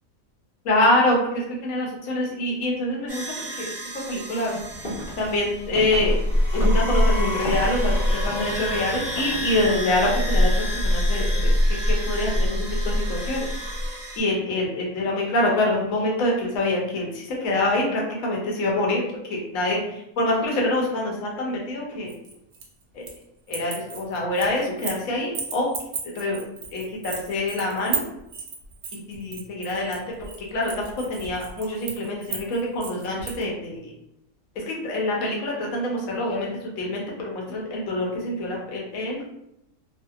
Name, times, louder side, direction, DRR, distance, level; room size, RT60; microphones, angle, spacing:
voice 1, 0.6-6.2 6.5-13.5 13.8-22.1 22.9-23.1 23.5-25.7 26.0-26.4 26.7-28.1 28.9-33.9 34.5-39.3, left 1 dB, 75° left, -2 dB, 1.0 m, -26 dB
sound 1, 3.1-14.2, equal, 30° right, 0.5 m, -24 dB
sound 2, 4.6-9.8, left 1 dB, 55° left, 0.7 m, -37 dB
sound 3, 22.1-23.2 23.5-25.0 25.3-33.4, right 6 dB, 70° right, 0.9 m, -34 dB
2.6 x 2.1 x 2.3 m, 0.82 s
omnidirectional pair, 1.5 m